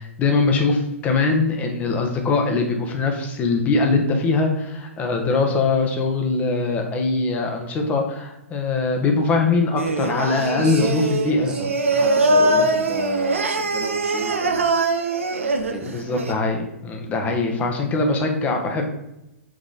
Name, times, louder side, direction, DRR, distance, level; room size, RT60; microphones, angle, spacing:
voice 1, 0.0-11.5 15.8-18.9, left 3 dB, 20° left, 3 dB, 1.2 m, -22 dB
Singing, 9.8-16.3, right 2 dB, 65° right, 0.9 m, -22 dB
voice 2, 10.5-10.9 11.4-14.7 15.7-16.0, right 2 dB, 10° right, -1 dB, 1.5 m, -33 dB
6.4 x 4.8 x 3.9 m, 0.90 s
figure-of-eight pair, 110°, 7 cm